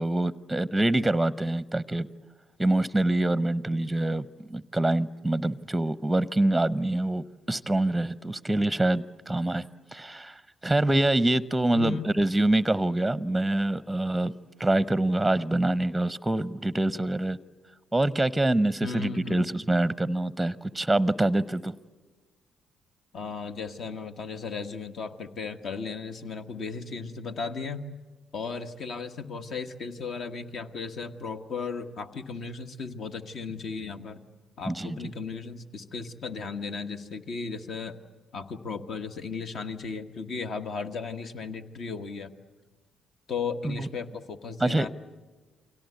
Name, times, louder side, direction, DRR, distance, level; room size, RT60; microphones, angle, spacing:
voice 1, 0.0-2.1 2.6-14.3 14.6-17.4 17.9-21.8 34.7-35.1 43.6-43.9 44.6-44.9, right 1 dB, 10° right, 18 dB, 0.8 m, -25 dB
voice 2, 11.7-12.1 18.8-19.5 23.1-27.8 28.3-34.2 34.6-37.9 38.3-42.3 43.3-44.9, left 5 dB, 55° left, 7 dB, 1.4 m, -35 dB
29.5 x 23.5 x 8.3 m, 1.3 s
figure-of-eight pair, 45°, 0 cm